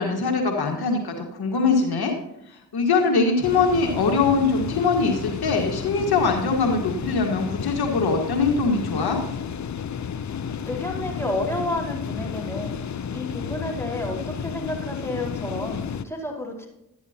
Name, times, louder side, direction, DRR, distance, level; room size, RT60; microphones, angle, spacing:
voice 1, 0.0-2.1 2.5-9.2, left 4 dB, 70° left, 2 dB, 1.7 m, -22 dB
sound 1, 3.4-16.0, left 7 dB, 45° left, 0.7 m, -32 dB
voice 2, 10.7-12.8 13.1-16.7, left 1 dB, 5° left, -1 dB, 4.6 m, -31 dB
12.5 x 10.5 x 2.9 m, 0.84 s
supercardioid pair, 40°, 39 cm